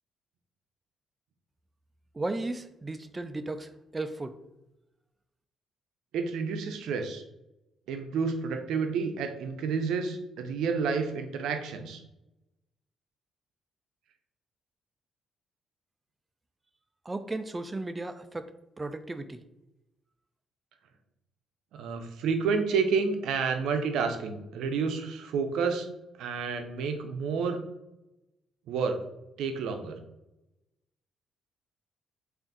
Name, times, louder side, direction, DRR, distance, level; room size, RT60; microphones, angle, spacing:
voice 1, 2.1-4.3 17.1-18.5 18.8-19.4, right 2 dB, 20° right, 9 dB, 0.3 m, -35 dB
voice 2, 6.1-7.2 7.9-12.0 21.7-25.9 26.2-27.6 28.7-29.0 29.4-30.0, right 5 dB, 85° right, 6 dB, 0.5 m, -30 dB
3.4 x 2.4 x 3.9 m, 0.92 s
cardioid pair, 90°, 0 cm